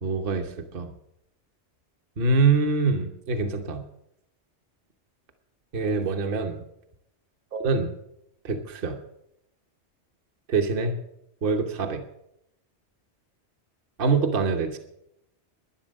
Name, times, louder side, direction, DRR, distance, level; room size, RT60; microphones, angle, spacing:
voice 1, 0.0-0.9 2.2-3.8 5.7-6.6 7.5-7.9 8.4-9.0 10.5-10.9 11.4-12.0 14.0-14.8, right 4 dB, 50° right, 5 dB, 1.1 m, -24 dB
11.5 x 10.5 x 6.3 m, 0.81 s
omnidirectional pair, 1.2 m